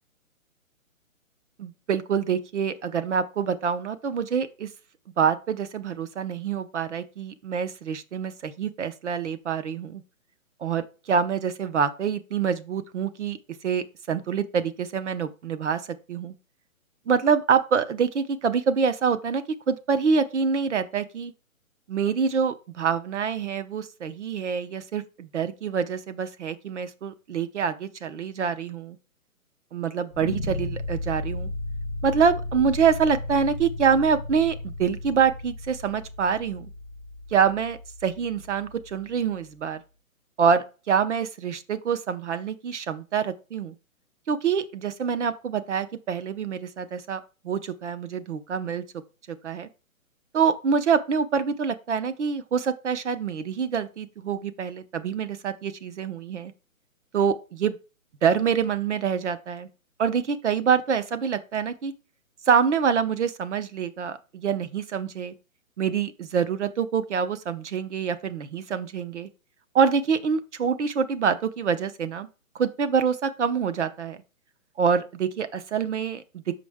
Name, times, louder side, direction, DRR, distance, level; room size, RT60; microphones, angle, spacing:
voice 1, 1.6-4.7 5.2-10.0 10.6-13.4 13.6-15.8 16.1-16.3 17.1-21.3 21.9-29.0 29.7-31.5 32.0-36.7 37.3-39.8 40.4-43.7 44.3-48.8 49.3-49.7 50.3-56.5 57.1-57.8 58.2-59.7 60.0-61.9 62.5-65.3 65.8-69.3 69.7-72.3 72.5-74.2 74.8-76.4, right 6 dB, 55° right, 0.8 m, -26 dB
sound 1, 30.1-39.1, left 2 dB, 35° left, 0.4 m, -35 dB
6.3 x 5.1 x 3.5 m
hypercardioid pair, 165°, 42 cm